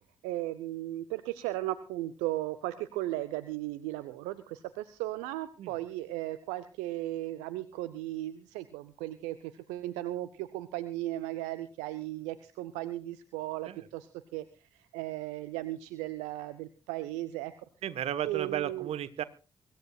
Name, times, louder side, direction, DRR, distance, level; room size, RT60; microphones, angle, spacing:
voice 1, 0.2-17.5 18.2-18.9, right 15 dB, 75° right, 13 dB, 0.7 m, -36 dB
voice 2, 17.8-19.2, right 10 dB, 60° right, 15 dB, 1.2 m, -34 dB
24.0 x 15.0 x 2.4 m, 0.34 s
hypercardioid pair, 40°, 12 cm